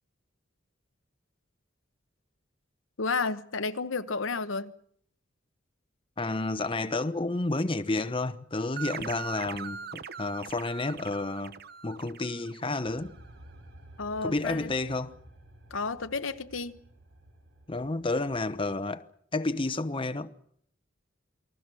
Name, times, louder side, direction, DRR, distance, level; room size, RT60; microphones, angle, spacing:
voice 1, 3.0-4.7 14.0-14.7 15.7-16.8, left 4 dB, 85° left, 1.1 m, -32 dB
voice 2, 6.2-11.5 11.8-13.1 14.2-15.2 17.7-19.1 19.3-20.3, left 2 dB, 25° left, 0.9 m, -30 dB
sound 1, 8.8-13.1, right 6 dB, 55° right, 0.9 m, -41 dB
sound 2, 12.8-18.6, right 1 dB, 75° right, 6.6 m, -53 dB
28.5 x 21.0 x 6.3 m
head